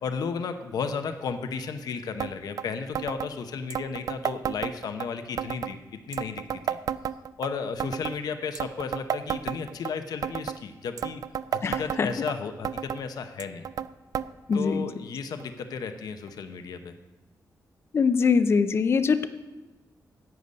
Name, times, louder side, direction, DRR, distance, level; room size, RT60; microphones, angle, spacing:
voice 1, 0.0-5.8 6.1-6.8 7.4-11.2 11.5-13.6 14.5-16.9, left 5 dB, 80° left, 8 dB, 0.8 m, -34 dB
sound 1, 2.2-2.3 2.6-2.7 2.9-3.3 3.7-5.1 5.4-5.7 6.1-7.5 7.8-8.2 8.5-9.9 10.2-10.6 11.0-12.3 12.6-13.0 13.4-13.9 14.1-14.3 14.5-14.6 15.4-15.5 16.3-16.4, right 9 dB, 65° right, 0.3 m, -31 dB
voice 2, 11.6-12.1 14.5-14.9 17.9-19.3, left 5 dB, 40° left, 11 dB, 0.4 m, -23 dB
11.0 x 8.1 x 5.2 m, 1.1 s
wide cardioid pair, 140°, 7 cm